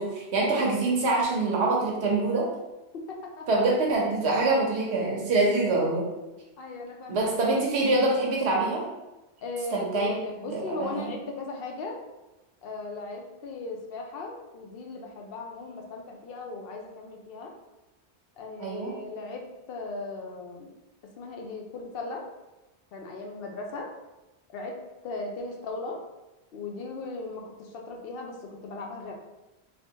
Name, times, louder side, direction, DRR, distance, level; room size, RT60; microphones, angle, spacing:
voice 1, 0.0-2.5 3.5-6.1 7.1-8.8 9.7-11.1 18.6-18.9, right 2 dB, 85° right, -2 dB, 1.0 m, -25 dB
voice 2, 2.9-3.5 6.3-7.3 9.4-12.0 12.6-17.5 18.4-20.7 21.2-22.2 22.9-23.9 24.5-24.8 25.0-26.0 26.5-29.1, left 3 dB, 65° left, 1 dB, 0.8 m, -37 dB
3.3 x 2.8 x 2.7 m, 1.0 s
omnidirectional pair, 1.1 m